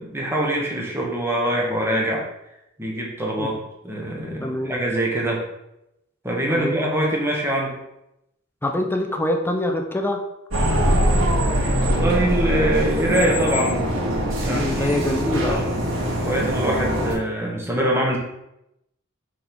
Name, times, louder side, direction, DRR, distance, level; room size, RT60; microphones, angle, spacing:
voice 1, 0.0-2.2 2.8-3.6 3.8-5.4 6.2-7.8 11.8-14.0 14.4-18.2, right 1 dB, 10° right, -2 dB, 1.4 m, -24 dB
voice 2, 4.4-4.8 6.5-6.7 8.6-10.2 14.5-15.6, left 1 dB, 10° left, 3 dB, 0.7 m, -24 dB
sound 1, 10.5-17.1, equal, 70° right, 1.8 m, -22 dB
6.2 x 3.7 x 4.6 m, 0.85 s
head